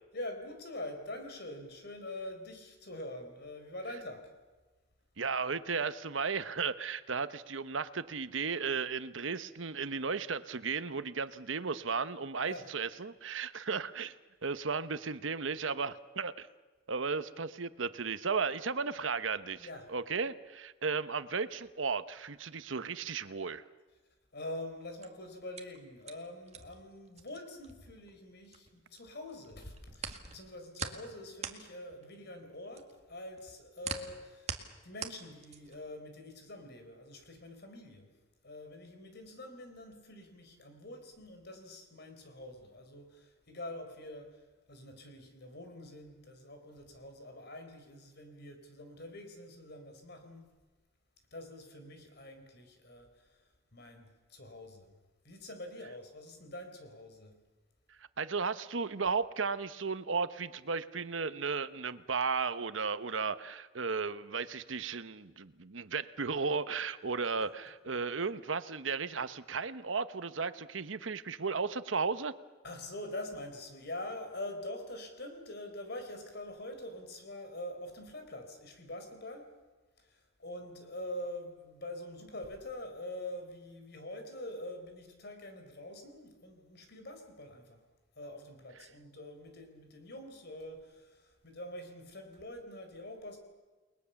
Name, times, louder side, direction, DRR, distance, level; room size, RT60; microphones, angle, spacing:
voice 1, 0.1-4.3 12.4-12.7 19.6-19.9 24.3-34.5 34.8-38.1 38.4-44.4 44.7-50.5 51.3-53.4 53.7-55.0 55.2-57.3 67.3-67.4 67.8-67.9 72.6-79.6 80.0-87.8 88.2-93.4, left 1 dB, 60° left, 4.5 m, -45 dB
voice 2, 5.2-14.2 14.4-16.5 16.9-23.6 58.0-72.3, right 5 dB, 85° right, 1.0 m, -35 dB
sound 1, 24.8-29.0 29.3-35.9, right 6 dB, 35° right, 2.0 m, -43 dB
30.0 x 21.0 x 7.1 m
head